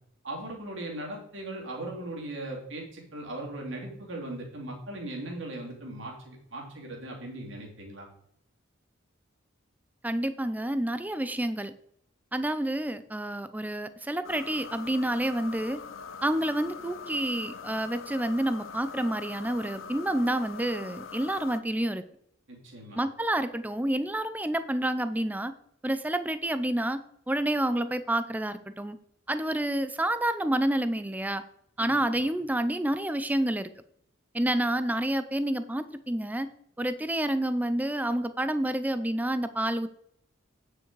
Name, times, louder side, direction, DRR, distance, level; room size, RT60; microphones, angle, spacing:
voice 1, 0.2-8.1 22.5-23.0 32.1-32.4, right 1 dB, 70° right, -1 dB, 2.9 m, -38 dB
voice 2, 10.0-11.7 12.3-15.8 16.2-22.0 23.0-25.5 25.8-27.0 27.3-29.0 29.3-31.4 31.8-33.7 34.3-36.5 36.8-39.9, right 1 dB, 10° right, 12 dB, 0.5 m, -29 dB
sound 1, 14.2-21.6, left 5 dB, 80° left, 0.7 m, -42 dB
9.0 x 6.5 x 4.7 m, 0.71 s
head